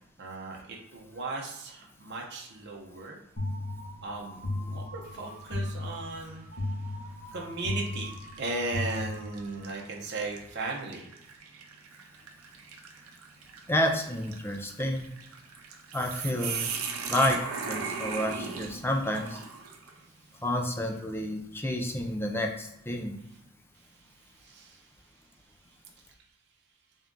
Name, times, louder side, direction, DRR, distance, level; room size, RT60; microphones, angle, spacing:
voice 1, 0.2-3.2 4.0-6.5 7.3-11.1 20.0-20.4 23.7-25.2 25.7-25.8, right 2 dB, 50° right, -1 dB, 0.7 m, -37 dB
sound 1, 3.4-9.7, left 2 dB, 45° left, 1.1 m, -36 dB
sound 2, 5.1-5.5 6.0-6.2 7.1-7.4 8.0-20.0, right 5 dB, 90° right, 0.6 m, -39 dB
voice 2, 13.7-15.1 15.9-16.7 17.1-19.4 20.4-23.2, left 1 dB, 10° left, 3 dB, 0.4 m, -30 dB
3.5 x 2.7 x 3.6 m, 0.80 s
head